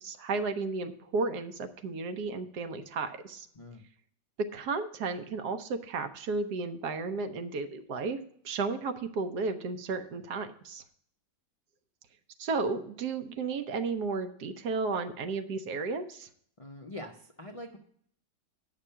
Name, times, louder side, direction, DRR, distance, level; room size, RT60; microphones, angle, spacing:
voice 1, 0.0-3.5 4.5-8.2 8.4-10.8 12.4-16.3, right 4 dB, 70° right, 8 dB, 1.3 m, -33 dB
voice 2, 16.6-17.8, left 1 dB, 50° left, 1 dB, 0.4 m, -44 dB
10.0 x 6.2 x 5.6 m, 0.63 s
omnidirectional pair, 1.9 m